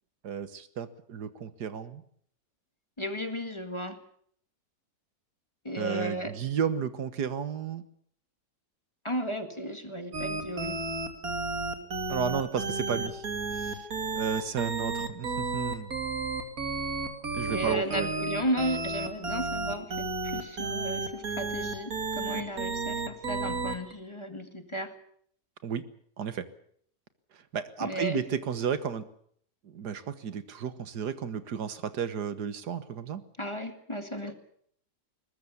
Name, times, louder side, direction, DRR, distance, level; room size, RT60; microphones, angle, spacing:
voice 1, 0.2-2.0 5.8-7.8 12.1-13.2 13.5-13.8 14.1-15.9 17.3-18.1 25.6-25.8 26.2-26.5 27.5-29.0 29.6-33.2, right 7 dB, 85° right, 12 dB, 1.9 m, -33 dB
voice 2, 3.0-4.0 5.6-6.3 9.0-10.8 17.5-24.9 27.8-28.2 33.4-34.3, equal, 20° left, 7 dB, 1.9 m, -34 dB
sound 1, 10.1-23.9, right 3 dB, 65° right, 3.0 m, -32 dB
22.0 x 20.0 x 7.0 m, 0.63 s
omnidirectional pair, 1.7 m